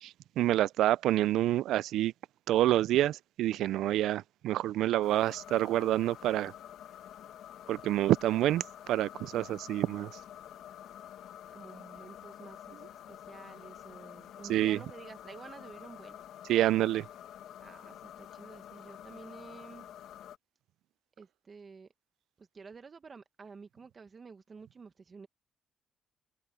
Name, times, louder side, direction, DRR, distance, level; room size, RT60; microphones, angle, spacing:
voice 1, 0.0-2.1 2.5-6.5 7.7-10.1 14.5-14.8 16.5-17.1, right 14 dB, 85° right, 0.3 m, -28 dB
sound 1, 5.0-20.4, left 11 dB, 75° left, 1.4 m, -49 dB
voice 2, 11.5-16.2 17.6-19.9 21.2-21.9 22.4-25.3, right 5 dB, 35° right, 1.2 m, -51 dB
cardioid pair, 115°, 0 cm